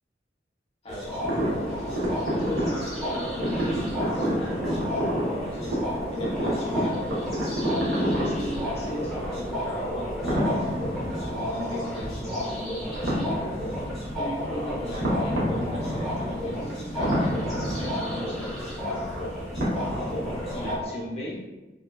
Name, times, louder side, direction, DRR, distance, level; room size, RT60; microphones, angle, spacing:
voice 1, 0.8-1.2 2.3-4.6 5.5-5.8 6.1-7.0 7.9-10.5 11.2-13.4 14.1-18.7 20.5-21.4, equal, 35° left, -4 dB, 0.6 m, -37 dB
sound 1, 0.9-20.8, left 1 dB, ahead, 0.8 m, -32 dB
sound 2, 1.2-20.8, equal, 90° right, 0.7 m, -30 dB
2.6 x 2.1 x 2.2 m, 1.1 s
head